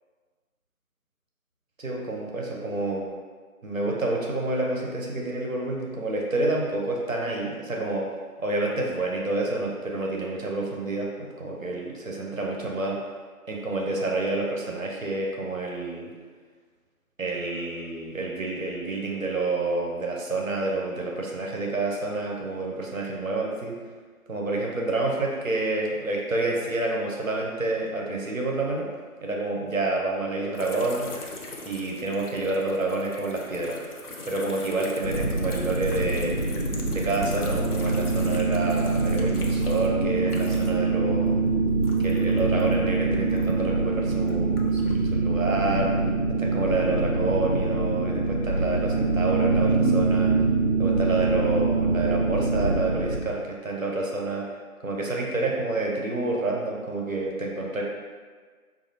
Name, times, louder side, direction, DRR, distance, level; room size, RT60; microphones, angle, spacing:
voice 1, 1.8-3.1 3.6-8.1 8.4-13.0 13.5-16.1 17.2-23.8 24.3-28.9 29.2-31.1 31.6-33.8 34.3-36.3 36.8-41.4 42.0-45.9 46.4-50.3 50.8-54.5 54.8-57.8, right 2 dB, 65° right, -1 dB, 0.7 m, -28 dB
sound 1, 30.5-40.9 41.2-43.7 44.2-45.0, left 2 dB, 85° left, 0.7 m, -41 dB
sound 2, 35.0-53.2, right 3 dB, 45° left, 0.4 m, -24 dB
4.1 x 2.4 x 2.7 m, 1.5 s
figure-of-eight pair, 165°, 44 cm